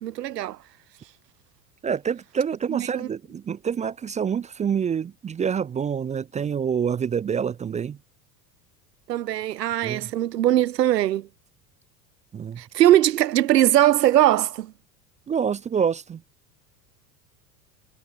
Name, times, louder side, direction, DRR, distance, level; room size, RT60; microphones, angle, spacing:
voice 1, 0.0-0.6 2.7-3.1 9.1-11.3 12.6-14.7, right 13 dB, 75° right, 0.6 m, -20 dB
voice 2, 1.8-8.0 9.8-10.1 12.3-12.6 15.3-16.2, right 7 dB, 15° right, 0.6 m, -27 dB
figure-of-eight pair, 75°, 49 cm